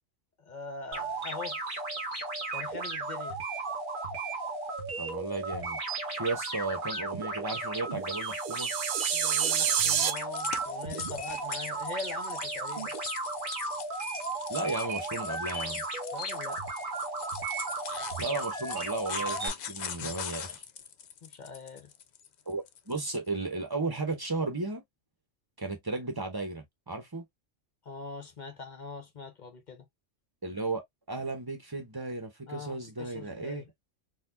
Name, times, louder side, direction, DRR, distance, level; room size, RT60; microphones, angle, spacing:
voice 1, 0.4-1.6 2.5-3.4 9.1-12.9 16.1-16.7 21.2-21.9 27.8-29.9 32.5-33.7, left 4 dB, 45° left, 0.8 m, -42 dB
sound 1, 0.9-19.5, right 3 dB, 40° right, 1.5 m, -35 dB
voice 2, 5.0-5.8 6.1-8.7 14.5-15.8 18.2-20.6 22.5-24.8 25.6-27.2 30.4-30.8 31.1-33.6, right 3 dB, 20° right, 0.9 m, -34 dB
sound 2, 8.3-10.1, right 9 dB, 75° right, 0.9 m, -28 dB
sound 3, 9.1-23.2, left 8 dB, 80° left, 0.4 m, -42 dB
4.1 x 2.4 x 2.6 m
omnidirectional pair, 1.3 m